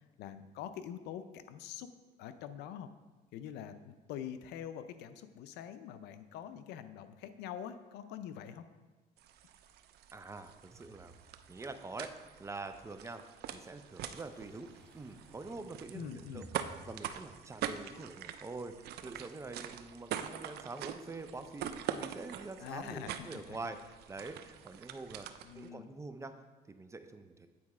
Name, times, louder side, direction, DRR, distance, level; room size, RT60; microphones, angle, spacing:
voice 1, 0.2-1.9 2.2-2.9 3.3-8.7 15.9-16.5 22.6-23.6 25.4-25.9, left 9 dB, 80° left, 11 dB, 0.5 m, -45 dB
sound 1, 9.2-25.7, right 10 dB, 70° right, 0.5 m, -44 dB
voice 2, 10.1-11.1 11.5-12.1 12.4-13.2 13.5-14.7 14.9-16.4 16.8-25.3 25.5-26.3 26.7-27.5, right 3 dB, 15° right, 8 dB, 0.5 m, -45 dB
sound 2, 10.7-11.8 12.2-12.3 13.6-17.0, right 1 dB, 5° left, 1.6 m, -57 dB
8.7 x 4.0 x 4.8 m, 1.3 s
cardioid pair, 110°, 17 cm